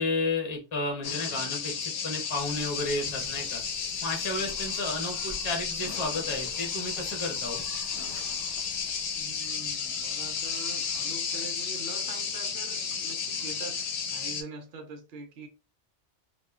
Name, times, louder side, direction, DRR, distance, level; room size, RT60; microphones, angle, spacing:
voice 1, 0.0-3.6 4.0-7.6, left 2 dB, 30° left, 0.6 m, -32 dB
sound 1, 1.0-14.4, left 6 dB, 90° left, 0.9 m, -33 dB
sound 2, 2.4-11.7, equal, 10° right, 1.0 m, -51 dB
voice 2, 9.1-13.8 14.1-15.5, right 3 dB, 65° right, 0.8 m, -44 dB
2.9 x 2.1 x 2.3 m
omnidirectional pair, 1.2 m